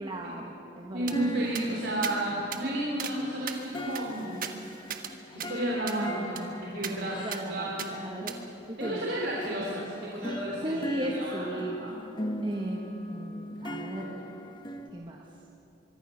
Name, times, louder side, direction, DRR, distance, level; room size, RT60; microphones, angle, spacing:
voice 1, 0.0-1.2 6.8-8.3 8.7-9.0 10.6-11.8 12.4-14.2 14.9-15.2, right 1 dB, 25° right, -1 dB, 1.6 m, -36 dB
voice 2, 0.9-4.3 5.3-8.0 8.8-11.9, right 1 dB, 65° right, -4 dB, 3.6 m, -32 dB
sound 1, 1.1-7.5 7.9-14.9, equal, 25° left, 1.2 m, -40 dB
sound 2, 1.1-1.2 1.5-1.7 2.0-2.2 2.5-2.6 3.0-3.2 3.5-5.1 5.4-5.5 5.9-6.0 6.4-6.5 6.8-6.9 7.3-7.4 7.8-7.9 8.3-8.4, right 8 dB, 50° right, 1.3 m, -38 dB
24.0 x 23.5 x 6.5 m, 2.8 s
head